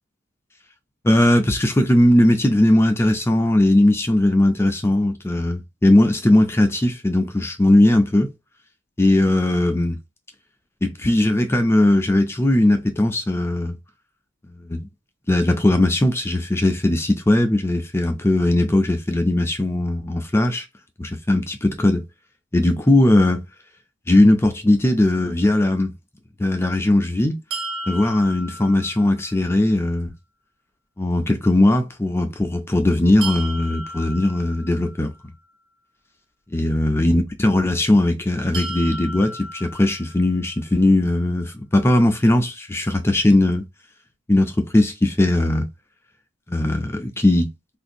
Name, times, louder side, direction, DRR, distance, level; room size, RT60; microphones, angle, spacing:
voice 1, 1.0-8.3 9.0-10.0 10.8-13.8 14.6-14.9 15.3-20.7 21.0-22.0 22.5-23.4 24.1-25.9 26.4-27.4 27.9-30.1 31.0-35.1 36.5-43.6 44.3-45.7 46.5-47.5, left 1 dB, 10° left, 0.3 m, -18 dB
sound 1, 27.5-29.5 33.2-35.3 38.5-40.6, right 2 dB, 75° right, 0.8 m, -34 dB
3.6 x 2.5 x 2.5 m
head